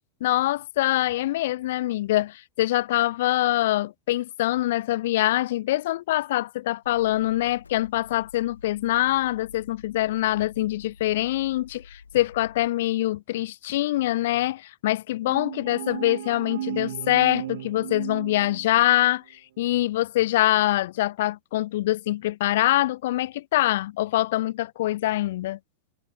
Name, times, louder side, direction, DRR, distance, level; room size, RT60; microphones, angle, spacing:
voice 1, 0.2-19.2 19.6-25.6, left 15 dB, 55° left, 0.4 m, -24 dB
sound 1, 6.8-12.7, left 5 dB, 75° left, 2.7 m, -49 dB
sound 2, 15.3-19.0, right 13 dB, 55° right, 0.5 m, -35 dB
figure-of-eight pair, 90°, 0 cm